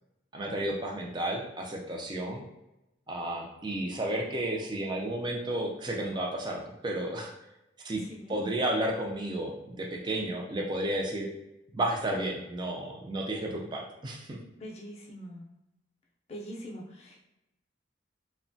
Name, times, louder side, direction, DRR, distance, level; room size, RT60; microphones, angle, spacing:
voice 1, 0.3-2.4 3.1-7.3 7.8-8.0 8.3-11.3 11.7-14.4, right 1 dB, 25° right, -1 dB, 0.4 m, -32 dB
voice 2, 8.0-8.3 14.6-15.5 16.3-17.2, equal, 35° left, -2 dB, 0.5 m, -43 dB
2.8 x 2.1 x 2.6 m, 0.93 s
head